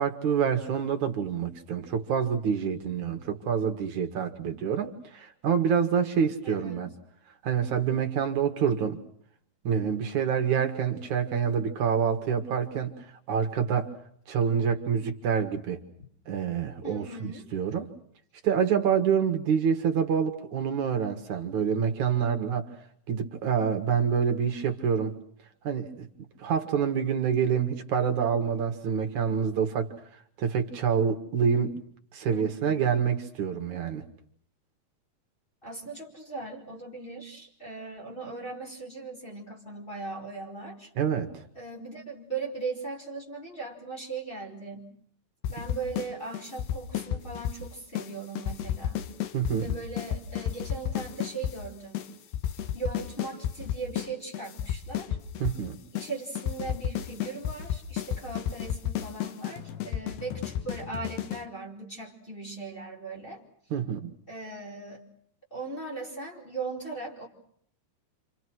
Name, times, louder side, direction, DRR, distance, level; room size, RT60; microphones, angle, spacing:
voice 1, 0.0-6.9 7.4-9.0 9.6-12.9 13.3-13.9 14.3-15.8 16.3-17.9 18.4-22.7 23.1-25.2 25.6-26.1 26.4-29.9 30.4-31.8 32.1-34.0 41.0-41.4 49.3-49.7 55.4-55.8 63.7-64.1, right 7 dB, 55° right, 6 dB, 3.1 m, -27 dB
voice 2, 6.4-6.9 16.8-17.5 32.3-32.9 35.6-40.9 41.5-44.9 45.5-49.0 49.6-52.1 52.7-55.2 55.9-63.4 64.3-65.0 65.5-67.3, right 4 dB, 15° left, 1 dB, 5.2 m, -39 dB
sound 1, 45.4-46.1 46.3-47.6 48.0-48.1 48.4-51.6 52.0-52.1 52.3-54.1 54.3-55.6 56.0-56.1 56.4-61.4, left 10 dB, 90° left, 3.5 m, -32 dB
29.0 x 26.5 x 6.3 m, 0.64 s
omnidirectional pair, 4.5 m